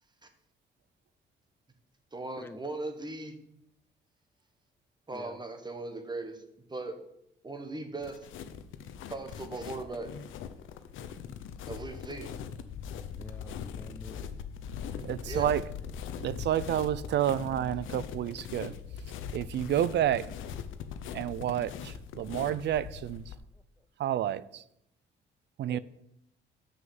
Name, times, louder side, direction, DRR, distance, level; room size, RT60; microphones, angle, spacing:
voice 1, 2.1-3.4 5.1-6.4 6.7-7.0 7.4-8.3 9.1-10.1 11.7-12.4 15.0-15.5, right 2 dB, 20° right, 1.3 m, -38 dB
sound 1, 8.0-23.4, left 7 dB, 80° left, 0.7 m, -41 dB
voice 2, 13.2-14.3 23.5-23.9 25.7-25.8, left 2 dB, 10° left, 0.5 m, -48 dB
voice 3, 15.0-15.6 16.2-18.7 19.3-20.3 21.1-23.3 24.0-24.6 25.6-25.8, right 11 dB, 60° right, 0.4 m, -30 dB
6.3 x 5.6 x 7.2 m
cardioid pair, 90°, 20 cm